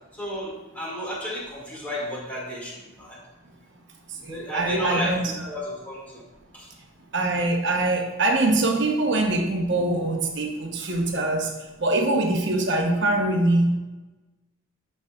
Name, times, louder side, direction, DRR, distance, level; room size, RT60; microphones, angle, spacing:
voice 1, 0.2-3.2 4.3-5.1 5.5-6.2 6.5-6.7, equal, 10° left, -6 dB, 2.2 m, -32 dB
voice 2, 4.1-5.5 7.1-11.5 11.8-13.8, right 2 dB, 55° right, 2 dB, 1.1 m, -23 dB
12.0 x 5.5 x 2.4 m, 1.2 s
head